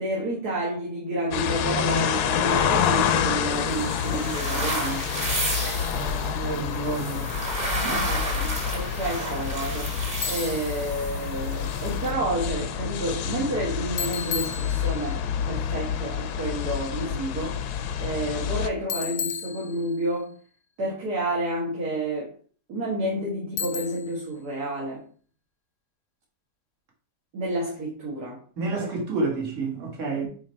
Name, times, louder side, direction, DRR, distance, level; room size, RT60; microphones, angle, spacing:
voice 1, 0.0-5.1 7.7-15.2 15.5-20.3 20.8-22.3 22.7-25.0 27.3-28.4, right 1 dB, 70° right, 2.3 m, -30 dB
sound 1, 1.3-18.7, left 8 dB, 75° left, 1.2 m, -28 dB
sound 2, 2.5-12.1, right 1 dB, 25° right, 1.7 m, -33 dB
voice 2, 5.9-7.3 28.6-30.3, right 3 dB, 50° right, 2.0 m, -29 dB
Bicycle, 10.2-10.7 14.0-15.2 18.9-20.1 23.6-24.2, left 8 dB, 60° left, 0.8 m, -33 dB
8.4 x 2.9 x 4.4 m
omnidirectional pair, 1.7 m